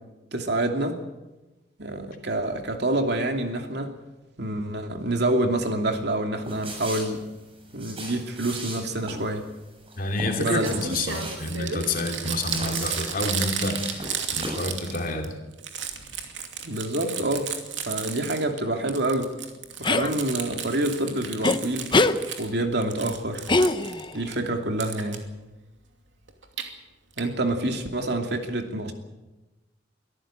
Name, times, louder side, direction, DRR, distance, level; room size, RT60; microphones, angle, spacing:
voice 1, 0.3-1.0 1.8-3.9 4.4-7.2 7.7-9.5 10.4-10.8 16.6-17.5 17.8-19.3 19.8-21.9 22.4-23.5 24.1-25.2 27.2-28.9, right 1 dB, 60° right, 4 dB, 2.7 m, -27 dB
sound 1, 6.4-14.7 15.0-15.1, right 1 dB, 30° right, 7.4 m, -38 dB
voice 2, 10.0-15.4, left 2 dB, 50° left, 3 dB, 3.0 m, -29 dB
Crumpling crinkling, 10.0-10.1 10.4-15.3 15.5-18.6 18.9-22.5 22.8-24.3 24.8-25.2 26.3-26.6 27.2-27.3 27.5-27.6 27.8-27.9, right 7 dB, 85° right, 2.7 m, -33 dB
sound 2, 19.8-20.1 21.4-21.6 21.9-22.2 23.5-24.1, left 2 dB, 25° left, 0.9 m, -21 dB
23.0 x 14.0 x 9.0 m, 1.1 s
head